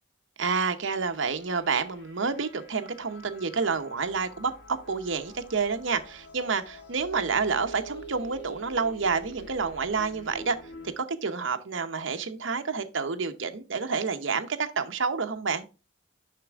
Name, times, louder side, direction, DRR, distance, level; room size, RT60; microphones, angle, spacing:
voice 1, 0.4-10.6 11.0-15.7, right 5 dB, 70° right, 0.8 m, -29 dB
sound 1, 0.8-10.9, right 1 dB, 55° left, 1.6 m, -47 dB
6.7 x 5.9 x 3.5 m
head